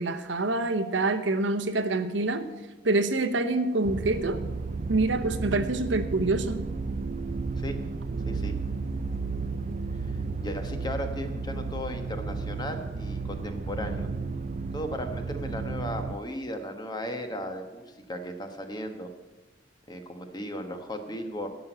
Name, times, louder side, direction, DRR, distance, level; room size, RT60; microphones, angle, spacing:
voice 1, 0.0-2.4 2.8-4.4 4.9-6.6, right 2 dB, 80° right, 9 dB, 0.9 m, -26 dB
sound 1, 3.8-16.2, right 4 dB, 40° right, 0.4 m, -33 dB
voice 2, 10.1-14.1 14.7-19.1 19.9-21.5, equal, 25° left, 6 dB, 1.2 m, -36 dB
12.0 x 6.2 x 9.0 m, 1.1 s
head